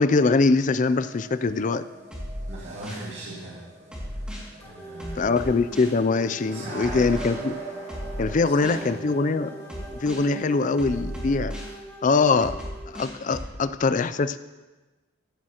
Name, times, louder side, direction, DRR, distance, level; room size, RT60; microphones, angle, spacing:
voice 1, 0.0-1.8 5.2-7.6 8.2-9.5 10.0-11.6 12.0-12.6 12.9-14.4, left 4 dB, 35° left, 14 dB, 0.4 m, -22 dB
sound 1, 0.8-11.4, right 3 dB, 35° right, 1.0 m, -43 dB
sound 2, 2.1-3.1 3.9-4.5 5.0-6.0 6.8-7.3 7.9-8.9 9.7-10.3 10.8-11.7 12.4-13.5, equal, 5° right, 2.3 m, -35 dB
voice 2, 2.5-3.6 4.1-4.2 4.6-5.3 6.5-7.1 8.5-9.0, right 1 dB, 55° right, -6 dB, 2.1 m, -38 dB
sound 3, 4.6-13.0, right 2 dB, 10° left, 1.0 m, -43 dB
15.0 x 11.0 x 3.0 m, 1.2 s
head